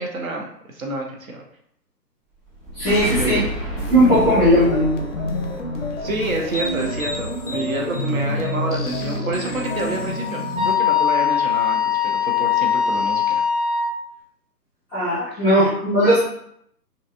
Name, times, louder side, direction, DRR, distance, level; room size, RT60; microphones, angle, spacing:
voice 1, 0.0-1.4 3.2-3.5 4.2-4.3 6.0-13.4 15.3-15.5, right 2 dB, 55° right, 0 dB, 0.6 m, -28 dB
sound 1, 2.4-7.5, right 1 dB, 10° right, 1.1 m, -31 dB
voice 2, 2.7-3.4 3.9-4.9 14.9-16.2, equal, 5° left, -12 dB, 0.7 m, -17 dB
sound 2, 3.8-10.8, left 1 dB, 50° left, 0.5 m, -27 dB
Wind instrument woodwind instrument, 9.6-13.9, left 8 dB, 30° right, 1.2 m, -21 dB
2.9 x 2.6 x 2.4 m, 0.70 s
figure-of-eight pair, 145°, 50 cm